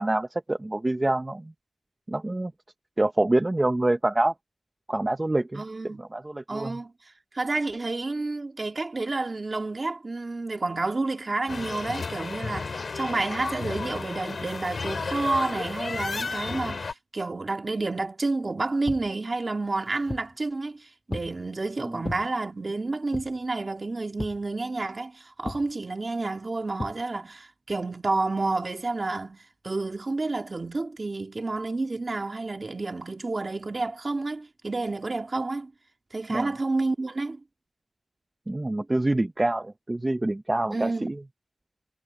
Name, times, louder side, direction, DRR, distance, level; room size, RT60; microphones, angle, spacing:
voice 1, 0.0-1.5 2.1-2.5 3.0-4.3 4.9-6.8 21.8-22.0 36.3-36.5 38.5-41.2, right 2 dB, 20° right, 0.8 m, -26 dB
voice 2, 5.5-6.0 6.5-35.7 36.1-37.4 40.7-41.1, right 3 dB, 40° right, 1.9 m, -30 dB
sound 1, 11.5-16.9, left 4 dB, 65° left, 2.4 m, -33 dB
sound 2, 18.9-19.1 19.7-20.4 21.1-21.4 22.0-22.3 23.1-23.5 24.2-24.5 25.4-25.7 26.8-27.0, left 2 dB, 30° left, 7.9 m, -36 dB
wide cardioid pair, 100°, 0 cm